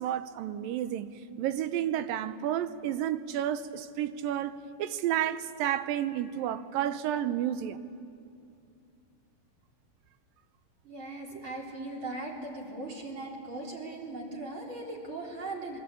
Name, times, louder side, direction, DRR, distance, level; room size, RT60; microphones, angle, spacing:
voice 1, 0.0-7.8, right 11 dB, 80° right, 2.5 m, -31 dB
voice 2, 10.8-15.8, right 2 dB, 35° right, 4.4 m, -39 dB
27.0 x 22.0 x 8.5 m
omnidirectional pair, 4.1 m